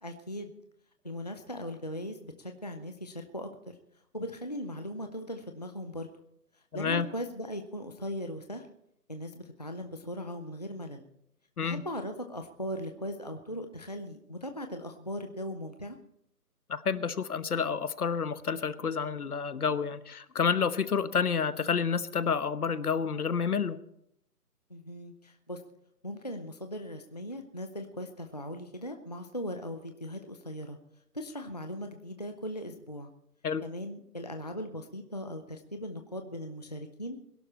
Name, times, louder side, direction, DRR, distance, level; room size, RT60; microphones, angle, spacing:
voice 1, 0.0-0.5 1.0-3.8 4.1-6.1 6.7-8.7 9.1-11.1 11.6-16.0 24.7-25.7 26.0-30.8 31.1-33.1 33.6-37.2, equal, 25° left, 6 dB, 0.6 m, -39 dB
voice 2, 6.7-7.1 11.6-11.8 16.7-23.8 33.4-33.6, left 6 dB, 70° left, 13 dB, 1.2 m, -29 dB
22.0 x 12.0 x 4.2 m, 0.75 s
hypercardioid pair, 175°, 47 cm